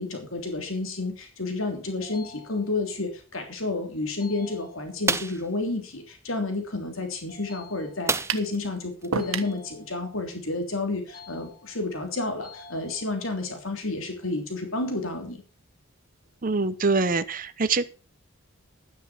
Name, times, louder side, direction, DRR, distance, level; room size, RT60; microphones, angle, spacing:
voice 1, 0.0-15.4, left 2 dB, 70° left, 5 dB, 3.2 m, -30 dB
sound 1, 2.0-3.0 4.2-5.2 7.3-8.3 9.2-10.3 11.1-12.0 12.4-13.4, left 3 dB, 45° left, 5.2 m, -49 dB
sound 2, 5.1-5.5 8.1-8.6 9.0-9.1 9.5-9.7, right 4 dB, 15° right, 0.6 m, -27 dB
sound 3, 8.3-8.5 9.1-9.6, right 5 dB, 80° right, 1.4 m, -29 dB
voice 2, 16.4-17.9, right 3 dB, 40° right, 11 dB, 0.8 m, -24 dB
12.5 x 9.8 x 6.0 m, 0.37 s
head